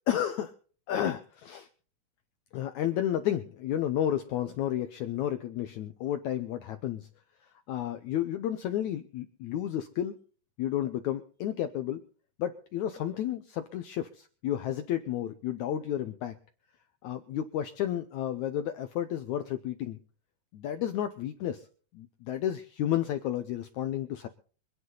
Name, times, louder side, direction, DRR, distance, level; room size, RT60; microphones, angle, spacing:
voice 1, 0.1-0.5 0.9-1.7 2.5-7.1 7.7-10.2 10.6-12.0 12.4-16.4 17.0-20.0 20.5-21.7 21.9-24.3, left 11 dB, 90° left, 9 dB, 1.6 m, -32 dB
25.0 x 9.7 x 4.0 m, 0.42 s
omnidirectional pair, 4.4 m